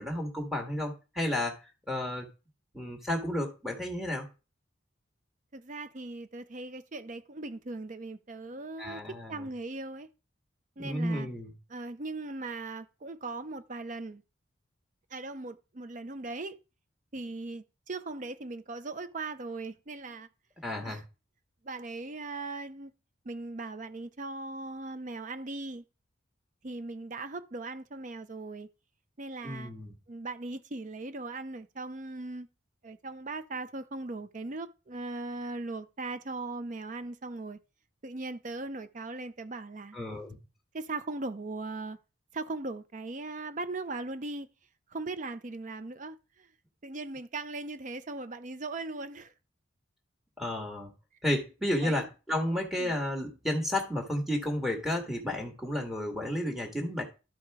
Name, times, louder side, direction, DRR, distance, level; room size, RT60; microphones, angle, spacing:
voice 1, 0.0-1.6 1.9-2.3 2.7-4.3 8.8-9.5 10.8-11.5 20.6-21.0 29.4-29.9 39.9-40.4 50.4-50.9 51.2-57.0, left 1 dB, ahead, 1.7 m, -32 dB
voice 2, 5.5-10.1 10.8-11.3 11.7-14.2 15.1-16.6 17.1-20.3 20.8-21.0 21.6-22.9 23.2-25.8 26.6-28.7 29.2-29.7 30.1-32.5 32.8-37.6 38.0-40.0 40.7-42.0 42.3-44.5 44.9-46.5 46.8-49.3 51.8-52.1 52.8-52.9, right 3 dB, 40° right, 0.6 m, -39 dB
12.0 x 4.9 x 4.8 m
head